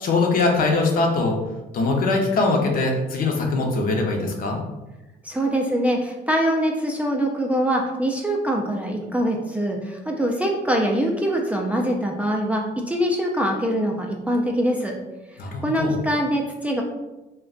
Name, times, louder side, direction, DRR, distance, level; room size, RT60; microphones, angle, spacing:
voice 1, 0.0-1.3 1.7-4.6 15.4-16.0, left 3 dB, 55° left, 1 dB, 0.7 m, -22 dB
voice 2, 5.2-14.9 15.6-16.8, equal, 10° right, 0 dB, 0.3 m, -23 dB
2.4 x 2.2 x 3.7 m, 1.0 s
cardioid pair, 110°, 17 cm